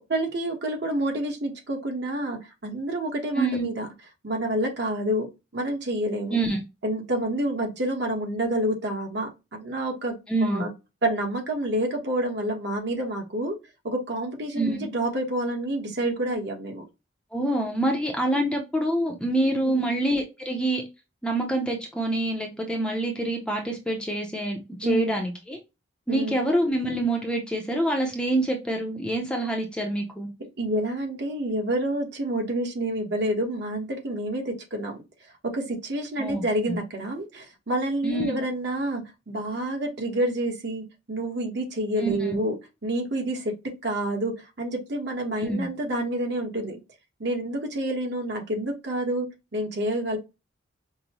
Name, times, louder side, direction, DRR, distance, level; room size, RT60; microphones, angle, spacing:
voice 1, 0.1-3.9 4.2-5.3 5.5-6.4 6.8-10.7 11.0-13.6 13.8-16.8 19.6-19.9 24.8-25.1 26.1-26.3 30.6-35.0 35.4-42.6 42.8-43.5 43.8-46.8 47.2-50.2, right 1 dB, 55° right, 1.2 m, -28 dB
voice 2, 3.3-3.7 6.3-6.6 10.3-10.7 14.5-14.8 17.3-20.8 21.2-25.6 26.1-30.3 36.2-36.8 38.0-38.4 42.0-42.4 45.4-45.7, right 1 dB, 5° left, 0.6 m, -26 dB
5.3 x 2.1 x 2.9 m
head